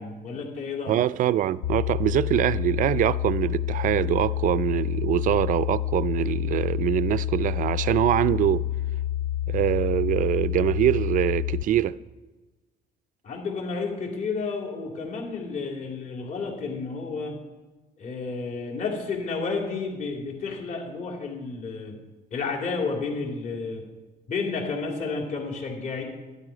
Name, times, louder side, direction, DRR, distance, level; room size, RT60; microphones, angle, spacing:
voice 1, 0.0-1.0 13.2-17.3 18.0-21.9 22.3-23.8 24.3-26.0, left 4 dB, 50° left, 3.2 m, -31 dB
voice 2, 0.9-8.6 9.5-11.9, right 12 dB, 50° right, 0.4 m, -24 dB
sound 1, 1.6-11.6, left 12 dB, 75° left, 0.5 m, -28 dB
12.5 x 10.5 x 5.0 m
cardioid pair, 110°, 17 cm